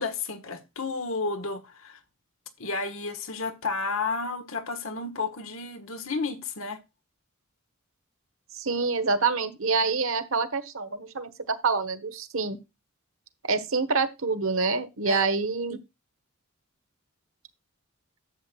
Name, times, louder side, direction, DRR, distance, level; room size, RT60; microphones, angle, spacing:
voice 1, 0.0-2.0 2.6-6.8 15.0-15.3, left 4 dB, 70° left, 1.5 m, -32 dB
voice 2, 8.6-12.6 13.5-15.8, right 4 dB, 70° right, 1.2 m, -26 dB
11.5 x 7.9 x 2.4 m
head